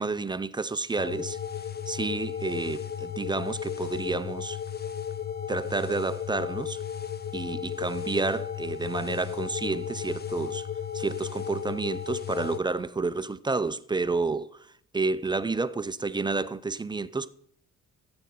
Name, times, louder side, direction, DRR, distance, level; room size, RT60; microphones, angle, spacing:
voice 1, 0.0-1.4 1.9-4.6 5.5-6.8 7.3-10.7 10.9-14.5 14.9-17.3, right 3 dB, 15° right, 0.4 m, -30 dB
sound 1, 1.0-12.6, left 8 dB, 35° left, 0.8 m, -34 dB
14.5 x 8.7 x 4.1 m
cardioid pair, 90°, 30 cm